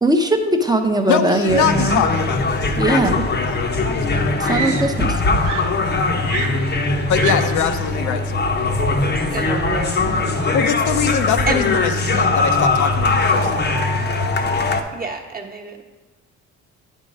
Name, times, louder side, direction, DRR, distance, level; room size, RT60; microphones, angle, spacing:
voice 1, 0.0-2.0 2.8-3.2 4.4-5.2, right 1 dB, 15° right, 5 dB, 0.7 m, -19 dB
voice 2, 1.1-3.6 7.1-8.5 10.5-13.7, left 8 dB, 75° left, 8 dB, 0.6 m, -23 dB
sound 1, 1.5-14.8, left 3 dB, 35° left, 0.7 m, -20 dB
Screaming, 3.6-3.7 4.4-5.2 5.4-7.7 8.7-9.0, right 8 dB, 90° right, 0.6 m, -29 dB
voice 3, 9.0-10.2 11.5-11.6 14.9-15.8, right 3 dB, 30° right, 1 dB, 1.1 m, -28 dB
9.5 x 3.7 x 5.2 m, 1.2 s
cardioid pair, 90°, 30 cm